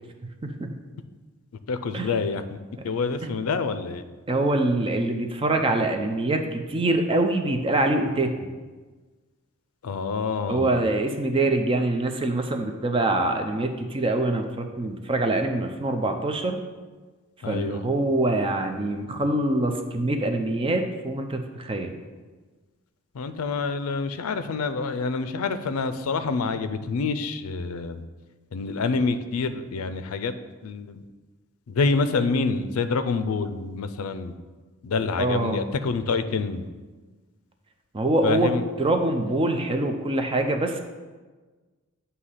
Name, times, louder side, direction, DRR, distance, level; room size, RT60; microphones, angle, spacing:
voice 1, 1.7-2.4 2.8-4.0 9.8-10.8 17.4-17.8 23.1-28.0 28.5-30.3 30.6-31.0 31.7-34.3 34.8-36.6 38.2-38.7, left 4 dB, 80° left, 11 dB, 0.4 m, -27 dB
voice 2, 4.3-8.3 10.5-16.6 17.5-21.9 35.2-35.6 37.9-38.5 38.8-40.8, right 2 dB, 25° right, 5 dB, 0.4 m, -24 dB
8.2 x 2.8 x 5.5 m, 1.3 s
head